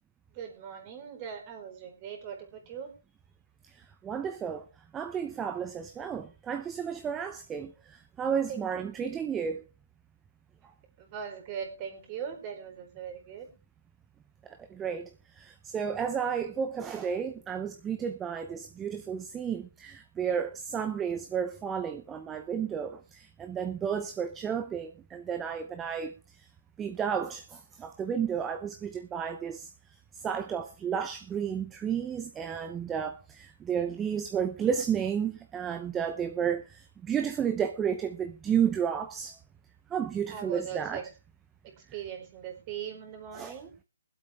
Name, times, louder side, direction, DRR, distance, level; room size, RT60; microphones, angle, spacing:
voice 1, 0.3-2.9 8.5-8.7 11.0-13.5 40.3-41.0 41.6-43.7, right 8 dB, 25° right, 4.3 m, -40 dB
voice 2, 3.7-4.6 4.9-9.6 14.7-26.5 26.8-29.7 30.1-39.4 39.9-41.0 43.3-43.5, right 7 dB, 10° right, 0.7 m, -32 dB
23.5 x 8.0 x 3.5 m
hypercardioid pair, 160°, 0 cm